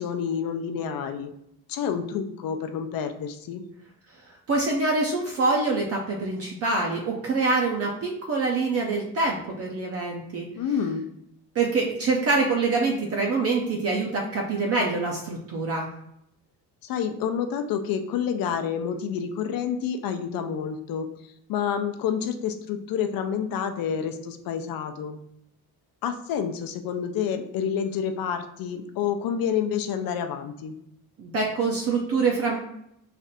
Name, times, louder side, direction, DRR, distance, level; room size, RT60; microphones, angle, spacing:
voice 1, 0.0-1.3 1.7-3.6 10.5-11.0 16.8-21.1 21.5-25.2 26.0-30.8, left 7 dB, 70° left, 7 dB, 0.5 m, -28 dB
voice 2, 4.5-10.5 11.6-15.9 31.2-32.6, right 3 dB, 40° right, 0 dB, 0.5 m, -25 dB
3.3 x 2.5 x 4.1 m, 0.76 s
cardioid pair, 160°, 37 cm